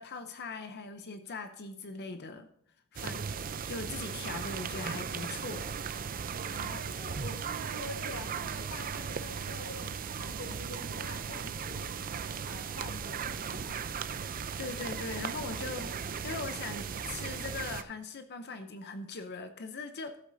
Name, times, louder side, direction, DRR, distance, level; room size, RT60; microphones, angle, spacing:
voice 1, 0.0-2.5 2.9-3.2 3.7-5.7 14.6-20.2, left 4 dB, 50° left, 8 dB, 0.7 m, -40 dB
sound 1, 3.0-17.8, right 6 dB, 40° right, 0.5 m, -37 dB
voice 2, 6.5-11.9 12.5-13.8, left 1 dB, 75° left, 2 dB, 2.1 m, -46 dB
15.0 x 8.1 x 2.7 m, 0.72 s
head